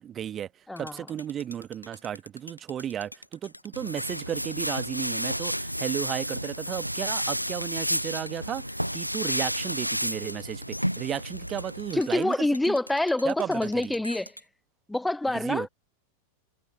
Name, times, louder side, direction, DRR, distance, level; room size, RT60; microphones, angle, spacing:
voice 1, 0.0-0.5 0.8-12.8 13.2-13.9 15.3-15.7, right 10 dB, 25° right, 1.2 m, -34 dB
sound 1, 0.8-14.4, left 1 dB, 90° left, 1.2 m, -45 dB
sound 2, 3.7-12.0, equal, 90° right, 0.4 m, -31 dB
voice 2, 11.9-14.3 14.9-15.7, left 2 dB, 5° left, 0.7 m, -26 dB
figure-of-eight pair, 90°, 0 cm